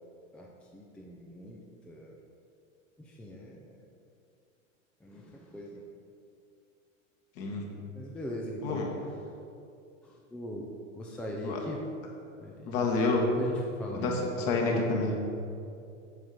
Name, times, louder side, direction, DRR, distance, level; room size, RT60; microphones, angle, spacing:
voice 1, 0.3-2.2 3.0-3.8 5.0-5.9 7.9-8.8 10.0-11.8 12.4-12.9 13.4-14.9, equal, 5° left, -2 dB, 0.3 m, -40 dB
voice 2, 7.4-7.7 8.6-8.8 11.4-11.6 12.7-13.2 13.9-15.1, left 3 dB, 50° left, 0 dB, 1.7 m, -28 dB
7.9 x 5.9 x 4.9 m, 2.6 s
hypercardioid pair, 120°, 39 cm